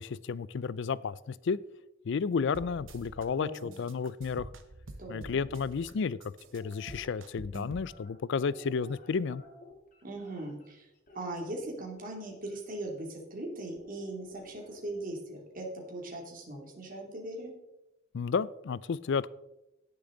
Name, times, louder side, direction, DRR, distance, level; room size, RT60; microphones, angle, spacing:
voice 1, 0.0-1.6 2.0-4.5 5.1-6.2 6.5-9.4 18.1-19.3, left 5 dB, 65° left, 20 dB, 0.4 m, -32 dB
sound 1, 2.5-3.2 3.5-5.9 6.2-7.9, right 2 dB, 75° right, 1.2 m, -47 dB
voice 2, 3.3-3.9 5.0-5.5 10.0-10.9 11.1-17.5, right 1 dB, 45° right, 0 dB, 2.7 m, -40 dB
sound 2, 6.4-7.0 7.8-10.7 11.1-12.6 13.8-15.1, left 1 dB, 45° left, 2.3 m, -53 dB
18.0 x 6.8 x 3.9 m, 0.92 s
head